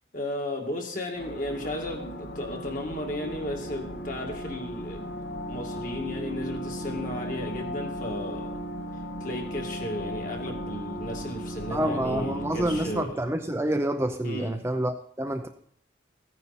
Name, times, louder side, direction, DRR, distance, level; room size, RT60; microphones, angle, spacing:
voice 1, 0.1-5.1 5.5-8.6 9.2-13.3 14.2-14.6, left 1 dB, 45° left, 1 dB, 2.2 m, -34 dB
sound 1, 1.1-13.0, equal, 65° left, 1.5 m, -36 dB
voice 2, 11.7-15.5, right 1 dB, 15° right, 6 dB, 0.5 m, -28 dB
15.0 x 9.7 x 4.2 m, 0.64 s
head